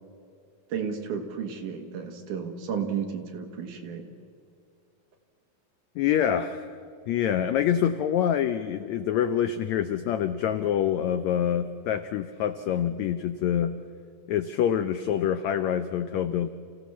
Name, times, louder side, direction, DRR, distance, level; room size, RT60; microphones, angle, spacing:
voice 1, 0.7-4.1, right 7 dB, 65° right, 5 dB, 3.0 m, -33 dB
voice 2, 6.0-6.7 7.1-13.8 14.3-16.5, left 9 dB, 90° left, 10 dB, 1.5 m, -26 dB
28.0 x 16.5 x 7.2 m, 2.4 s
omnidirectional pair, 4.1 m